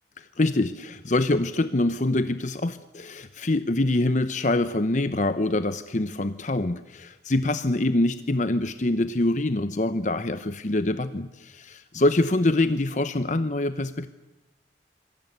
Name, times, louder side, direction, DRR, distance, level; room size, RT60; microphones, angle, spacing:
voice 1, 0.4-14.1, left 2 dB, 45° left, 12 dB, 0.9 m, -25 dB
27.0 x 22.5 x 8.1 m, 0.99 s
head